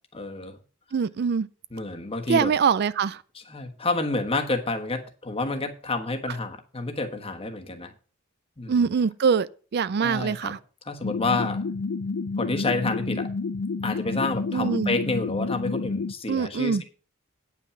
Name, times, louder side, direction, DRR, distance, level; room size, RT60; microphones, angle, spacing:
voice 1, 0.1-0.6 1.7-2.5 3.3-7.9 8.6-8.9 10.0-10.5 10.9-11.6 12.4-13.3 13.8-16.8, left 2 dB, 30° left, 1.3 m, -29 dB
voice 2, 0.9-1.5 2.3-3.2 8.7-10.6 14.5-14.9 16.3-16.8, right 6 dB, 50° right, 0.4 m, -24 dB
sound 1, 11.0-16.1, left 4 dB, 80° left, 0.5 m, -30 dB
9.3 x 5.8 x 6.9 m
head